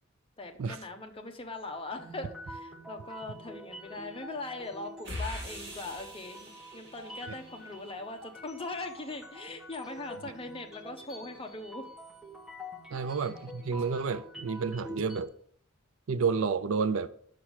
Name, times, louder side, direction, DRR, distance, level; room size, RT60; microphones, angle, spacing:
voice 1, 0.4-11.9 12.9-13.1, left 2 dB, 25° left, 4 dB, 0.9 m, -41 dB
sound 1, 2.0-15.3, equal, 5° right, 1.1 m, -47 dB
sound 2, 5.0-7.8, equal, 55° right, 2.6 m, -42 dB
voice 2, 12.9-15.3 16.1-17.1, right 5 dB, 70° right, 15 dB, 0.5 m, -30 dB
6.0 x 5.8 x 6.4 m, 0.63 s
head